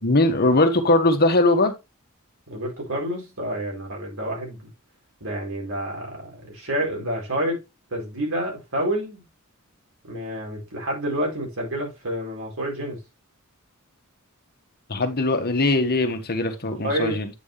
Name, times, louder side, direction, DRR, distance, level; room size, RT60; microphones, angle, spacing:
voice 1, 0.0-1.7 14.9-17.3, left 2 dB, 45° left, 1.5 m, -20 dB
voice 2, 2.5-4.6 5.2-7.6 7.9-9.2 10.1-13.0 16.8-17.2, right 1 dB, 65° right, 4.5 m, -28 dB
8.7 x 6.3 x 3.3 m
head